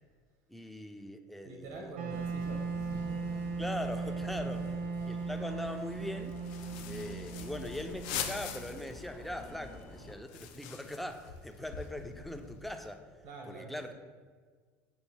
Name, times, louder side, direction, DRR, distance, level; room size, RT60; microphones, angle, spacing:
voice 1, 0.5-1.9 3.6-4.6 5.1-6.4 6.9-13.0 13.5-13.9, left 1 dB, ahead, 6 dB, 0.3 m, -41 dB
voice 2, 1.4-3.3 4.4-4.7 13.2-13.9, right 2 dB, 75° right, 2 dB, 0.8 m, -46 dB
Wind instrument woodwind instrument, 1.9-8.9, right 4 dB, 90° right, 0.4 m, -38 dB
sound 1, 2.1-10.1, left 3 dB, 40° left, 0.8 m, -50 dB
sound 2, 6.3-9.1 9.4-9.5 9.7-12.9, left 9 dB, 80° left, 0.4 m, -43 dB
5.3 x 2.9 x 3.2 m, 1.5 s
supercardioid pair, 115°, 6 cm